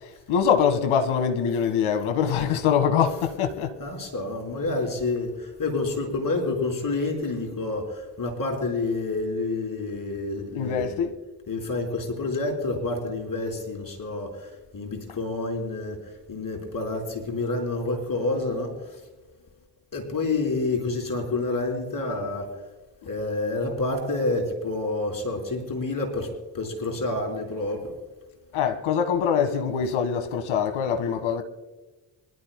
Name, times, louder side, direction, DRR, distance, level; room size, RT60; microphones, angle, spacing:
voice 1, 0.3-3.8 10.5-11.1 28.5-31.4, left 7 dB, 70° left, 1.6 m, -23 dB
voice 2, 3.8-10.9 11.5-19.0 19.9-22.6 23.1-27.9, left 2 dB, 40° left, 4.6 m, -28 dB
26.0 x 12.5 x 2.2 m
hypercardioid pair, 45°, 49 cm